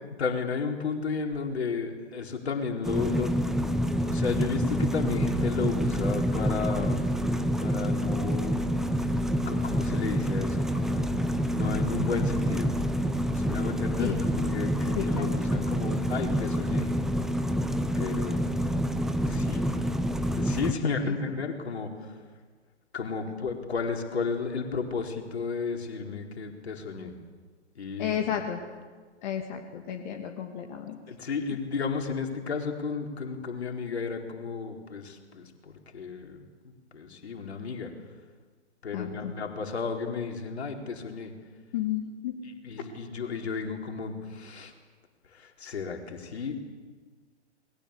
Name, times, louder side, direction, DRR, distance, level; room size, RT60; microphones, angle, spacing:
voice 1, 0.2-8.8 9.5-11.1 11.5-12.7 13.3-16.9 18.0-18.7 19.2-19.6 20.3-22.1 22.9-27.1 27.8-28.4 31.1-37.9 38.8-41.3 42.4-44.7 45.3-46.6, left 5 dB, 65° left, 3 dB, 4.4 m, -33 dB
sound 1, 2.8-20.7, equal, ahead, 1.0 m, -27 dB
voice 2, 15.0-15.4 21.0-21.1 28.0-28.6 29.2-31.0 38.9-39.3 41.7-42.4, left 10 dB, 40° left, 2 dB, 2.8 m, -32 dB
28.5 x 22.0 x 8.4 m, 1.5 s
figure-of-eight pair, 120°, 35 cm